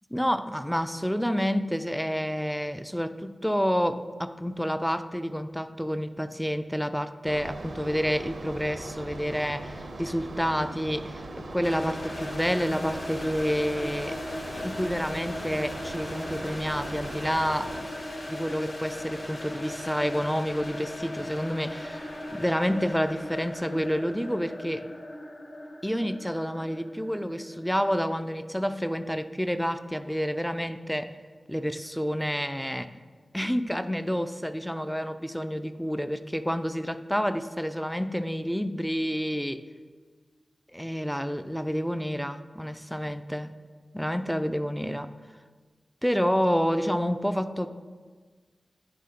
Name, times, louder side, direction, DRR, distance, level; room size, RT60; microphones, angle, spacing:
voice 1, 0.1-14.2 14.5-17.7 18.3-24.9 25.8-31.2 31.5-33.0 33.3-39.6 40.7-43.6 43.9-45.1 46.0-47.7, equal, ahead, 10 dB, 0.5 m, -29 dB
sound 1, 7.3-17.8, right 2 dB, 75° right, 0.7 m, -40 dB
sound 2, 11.6-28.5, left 1 dB, 65° left, 1.3 m, -38 dB
9.8 x 3.6 x 5.2 m, 1.5 s
cardioid pair, 40°, 0 cm